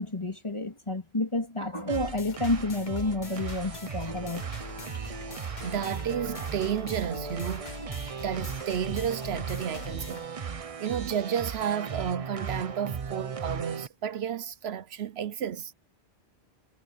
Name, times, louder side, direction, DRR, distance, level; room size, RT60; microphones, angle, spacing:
voice 1, 0.0-4.4, left 2 dB, 25° left, 2.7 m, -30 dB
sound 1, 1.9-10.3, left 4 dB, 45° left, 1.3 m, -43 dB
sound 2, 1.9-13.9, right 6 dB, 35° right, 0.7 m, -37 dB
voice 2, 5.6-7.7 8.1-10.4 10.8-15.7, right 8 dB, 75° right, 1.0 m, -32 dB
omnidirectional pair, 1.1 m